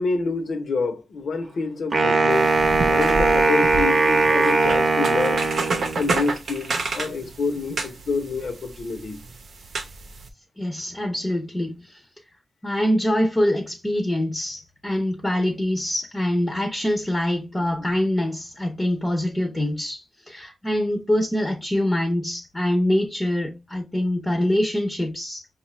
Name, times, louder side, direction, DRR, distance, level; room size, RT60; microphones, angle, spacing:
voice 1, 0.0-2.5 2.8-5.5 5.9-9.2 17.8-17.9, left 4 dB, 80° left, 0.8 m, -27 dB
Wind instrument woodwind instrument, 1.9-6.2, right 3 dB, 50° right, 0.7 m, -20 dB
sound 1, 2.3-10.3, right 3 dB, 85° right, 0.7 m, -31 dB
voice 2, 10.6-12.0 12.6-25.5, left 1 dB, 15° left, 0.6 m, -24 dB
5.8 x 2.4 x 3.1 m
wide cardioid pair, 120°, 0 cm